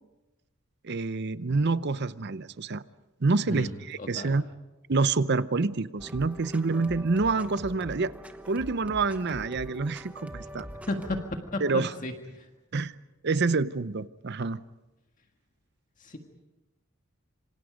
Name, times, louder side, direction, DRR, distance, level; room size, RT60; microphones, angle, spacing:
voice 1, 0.8-2.8 3.2-4.5 4.9-8.1 8.5-10.7 11.6-11.9 12.7-12.9 13.2-14.6, right 3 dB, 55° right, 0.7 m, -27 dB
voice 2, 3.5-4.4 10.9-11.2 11.5-12.5 16.0-16.2, left 2 dB, 40° left, 1.8 m, -34 dB
sound 1, 6.0-11.3, equal, 5° right, 1.1 m, -43 dB
26.5 x 26.0 x 5.2 m
head